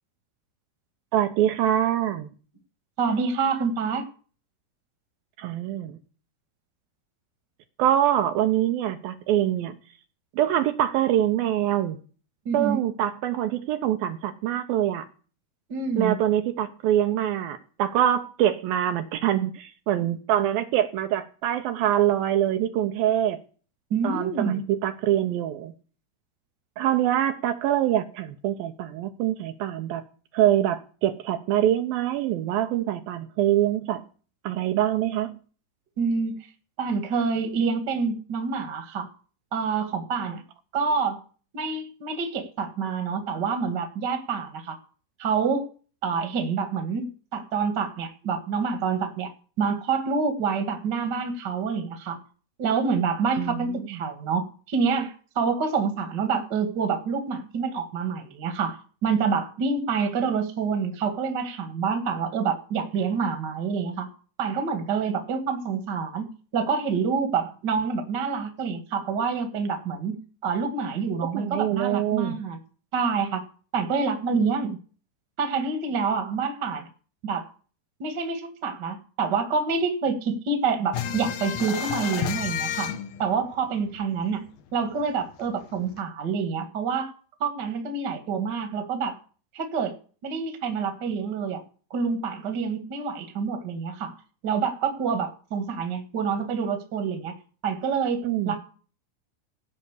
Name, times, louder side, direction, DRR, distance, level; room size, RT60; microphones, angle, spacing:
voice 1, 1.1-2.3 5.4-6.0 7.8-9.8 10.3-12.0 12.5-15.1 16.0-23.4 24.0-25.7 26.8-30.0 30.3-34.0 34.4-35.4 53.4-54.1 71.3-72.4 98.2-98.6, right 11 dB, 75° right, 2.4 m, -24 dB
voice 2, 3.0-4.1 12.4-12.8 15.7-16.1 23.9-24.6 36.0-36.3 36.8-39.1 39.5-40.4 40.7-41.2 41.5-44.8 45.2-45.7 46.0-49.3 49.6-52.2 52.6-64.1 64.4-70.2 70.4-72.6 72.9-73.4 73.7-74.8 75.4-76.9 77.2-77.4 78.0-82.9 83.2-84.4 84.7-87.1 87.4-89.2 89.5-89.9 90.2-91.6 91.9-94.1 94.4-97.3 97.6-98.6, right 5 dB, 40° right, 1.6 m, -27 dB
sound 1, 80.9-84.3 84.6-84.7 85.0-86.0, left 9 dB, 70° left, 1.7 m, -31 dB
16.0 x 5.7 x 8.2 m
omnidirectional pair, 4.5 m